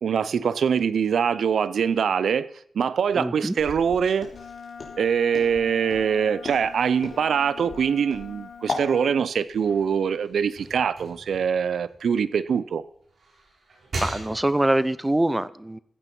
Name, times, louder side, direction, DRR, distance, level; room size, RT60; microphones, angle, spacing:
voice 1, 0.0-2.5 2.7-4.3 5.0-12.8, right 7 dB, 80° right, 0.5 m, -23 dB
voice 2, 3.1-3.6 14.0-15.8, right 1 dB, 15° right, 0.5 m, -24 dB
Walk footsteps, 3.6-8.9, left 4 dB, 60° left, 3.5 m, -36 dB
Wind instrument woodwind instrument, 4.3-9.3, left 6 dB, 80° left, 1.1 m, -43 dB
sound 1, 9.5-12.6 13.0-14.8, right 2 dB, 60° right, 5.5 m, -39 dB
14.5 x 8.3 x 5.4 m
wide cardioid pair, 110°, 0 cm